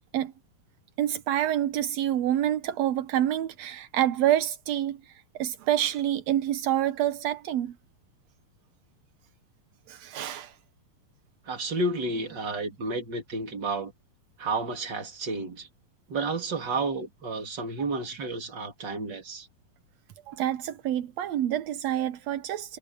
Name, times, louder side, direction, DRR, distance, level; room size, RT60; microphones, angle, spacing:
voice 1, 1.0-5.0 5.4-7.7 9.9-10.5 20.3-22.8, right 12 dB, 80° right, 1.5 m, -27 dB
voice 2, 11.5-13.9 14.4-15.7 16.1-19.5, right 3 dB, 30° right, 2.8 m, -31 dB
omnidirectional pair, 4.3 m